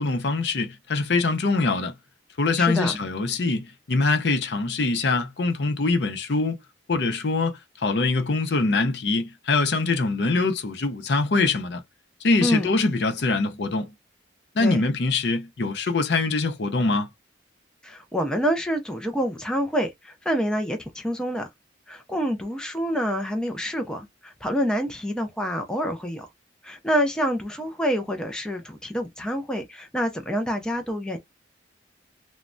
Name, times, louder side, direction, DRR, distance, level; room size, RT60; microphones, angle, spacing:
voice 1, 0.0-2.0 2.4-6.6 6.9-11.8 12.2-13.9 14.5-17.1, left 3 dB, 60° left, 0.6 m, -23 dB
voice 2, 2.6-3.0 12.4-12.7 14.6-14.8 17.8-21.5 21.9-26.3 26.6-31.2, equal, 5° left, 0.4 m, -27 dB
3.1 x 2.1 x 2.5 m
head